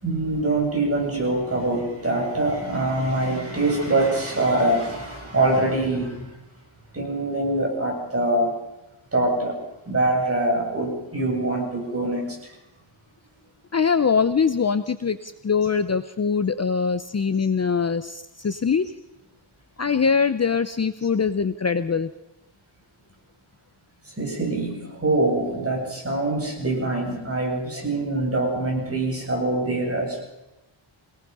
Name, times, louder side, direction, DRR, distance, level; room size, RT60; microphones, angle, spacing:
voice 1, 0.0-6.3 6.9-8.6 9.1-9.6 9.9-12.4 24.2-30.2, right 2 dB, 30° right, 0 dB, 8.0 m, -24 dB
voice 2, 13.7-18.8 19.8-22.1, left 5 dB, 35° left, 11 dB, 0.8 m, -23 dB
26.0 x 18.5 x 5.5 m, 0.95 s
wide cardioid pair, 120°, 47 cm